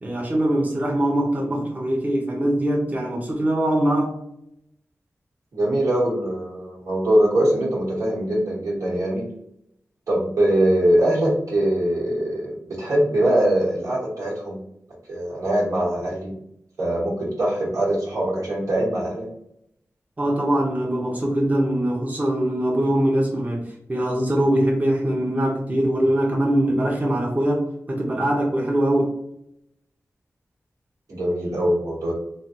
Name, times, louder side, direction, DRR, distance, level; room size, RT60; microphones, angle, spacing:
voice 1, 0.0-4.2 20.2-23.6 23.9-29.1, right 1 dB, 30° right, -1 dB, 0.7 m, -22 dB
voice 2, 5.5-9.3 10.1-14.6 15.1-16.3 16.8-19.3 31.1-32.1, right 1 dB, 90° right, -6 dB, 1.4 m, -22 dB
3.2 x 2.3 x 2.8 m, 0.74 s
wide cardioid pair, 105°, 5 cm